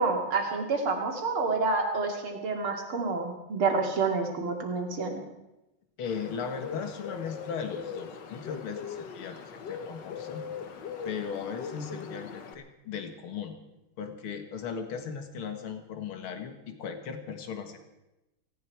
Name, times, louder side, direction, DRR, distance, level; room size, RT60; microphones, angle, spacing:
voice 1, 0.0-5.2, right 4 dB, 75° right, 2 dB, 3.2 m, -28 dB
voice 2, 6.0-10.4 11.0-13.6 14.0-17.9, left 6 dB, 75° left, 7 dB, 2.4 m, -37 dB
Bird, 6.0-12.5, left 6 dB, 60° left, 1.8 m, -40 dB
18.0 x 16.5 x 4.7 m, 0.96 s
omnidirectional pair, 2.4 m